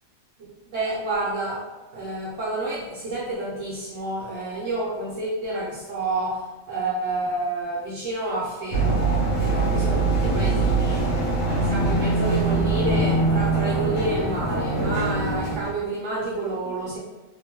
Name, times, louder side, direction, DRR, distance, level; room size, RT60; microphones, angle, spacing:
voice 1, 0.4-1.6 1.9-11.1 11.7-17.0, right 2 dB, 70° right, -6 dB, 0.9 m, -29 dB
sound 1, 8.7-15.7, right 3 dB, 70° left, 1.0 m, -23 dB
2.8 x 2.1 x 2.8 m, 1.1 s
omnidirectional pair, 1.4 m